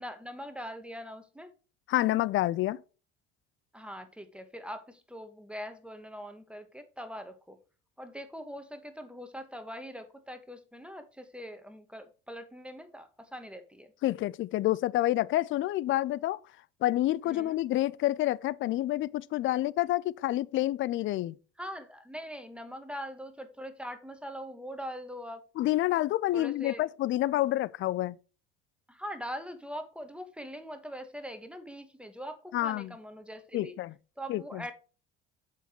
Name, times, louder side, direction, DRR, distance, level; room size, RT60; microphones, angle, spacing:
voice 1, 0.0-1.5 3.7-7.6 8.0-13.9 17.2-17.6 19.5-19.6 21.6-25.4 26.3-26.9 28.9-33.7 34.2-34.7, equal, 5° right, 1.3 m, -42 dB
voice 2, 1.9-2.8 14.0-16.4 16.8-21.4 25.6-28.2 32.5-32.9 33.5-33.9 34.3-34.6, left 15 dB, 40° left, 0.4 m, -28 dB
7.1 x 5.7 x 4.3 m
hypercardioid pair, 65°, 30 cm